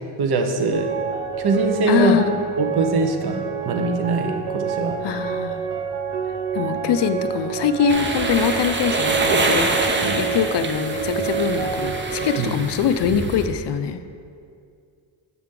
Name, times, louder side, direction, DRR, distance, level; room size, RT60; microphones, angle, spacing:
voice 1, 0.2-0.9 1.4-2.1 2.6-5.0 10.0-10.2 12.4-12.5, right 3 dB, 50° right, 5 dB, 0.8 m, -22 dB
sound 1, 0.7-12.4, right 7 dB, 90° right, 0.9 m, -28 dB
voice 2, 1.9-2.3 5.0-5.6 6.5-14.0, left 7 dB, 60° left, 10 dB, 0.5 m, -23 dB
sound 2, 7.9-13.5, right 3 dB, 25° right, 0.5 m, -25 dB
7.7 x 5.9 x 3.7 m, 2.3 s
cardioid pair, 110°, 49 cm